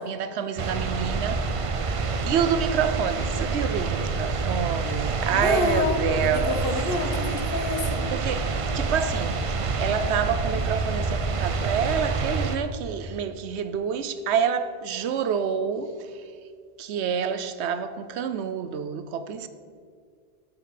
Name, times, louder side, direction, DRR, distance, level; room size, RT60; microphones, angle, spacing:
voice 1, 0.0-1.5 2.3-6.5 8.1-8.5 8.7-16.1 16.8-19.5, right 7 dB, 85° right, 0.9 m, -28 dB
sound 1, 0.6-12.6, right 4 dB, 45° right, 0.5 m, -27 dB
voice 2, 5.3-8.0, left 2 dB, 55° left, 1.2 m, -28 dB
11.5 x 5.2 x 5.8 m
omnidirectional pair, 1.1 m